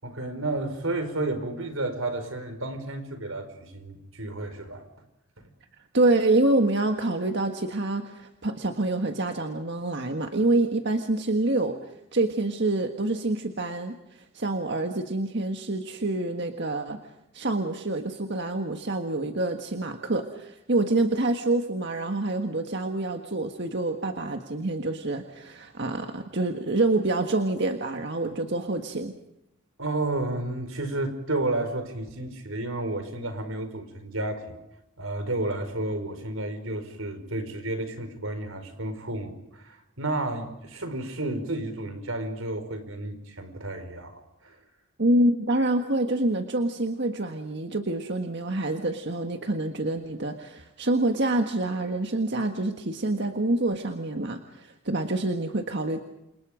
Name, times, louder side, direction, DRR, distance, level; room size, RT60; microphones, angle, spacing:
voice 1, 0.0-4.9 29.8-34.6 35.0-44.6, right 2 dB, 85° right, 9 dB, 4.9 m, -31 dB
voice 2, 5.9-11.8 12.1-17.0 17.3-29.1 45.0-56.0, right 2 dB, 55° right, 5 dB, 1.7 m, -26 dB
29.0 x 28.0 x 5.1 m, 0.86 s
head